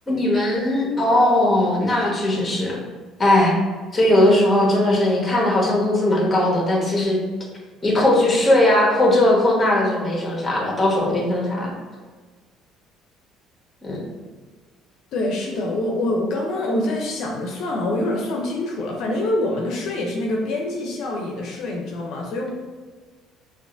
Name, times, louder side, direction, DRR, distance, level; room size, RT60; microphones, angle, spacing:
voice 1, 0.1-2.8 3.2-3.5 3.9-7.2 7.8-11.7 13.8-14.0, left 1 dB, 20° left, -2 dB, 1.2 m, -19 dB
voice 2, 15.1-22.5, left 1 dB, 70° left, 0 dB, 0.5 m, -25 dB
5.8 x 2.5 x 2.5 m, 1.4 s
supercardioid pair, 85°, 0 cm